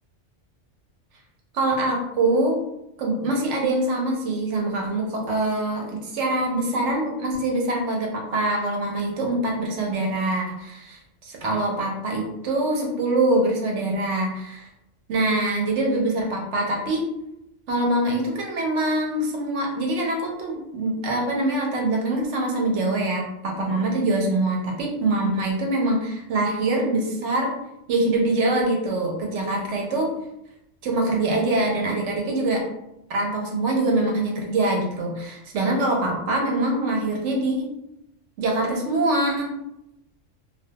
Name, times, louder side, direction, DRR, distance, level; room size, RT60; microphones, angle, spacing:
voice 1, 1.5-2.6 3.0-14.7 15.1-17.0 17.7-27.6 27.9-30.1 30.8-32.6 33.1-37.7 38.4-39.5, right 2 dB, 75° right, 0 dB, 0.9 m, -24 dB
2.2 x 2.2 x 2.7 m, 0.85 s
omnidirectional pair, 1.3 m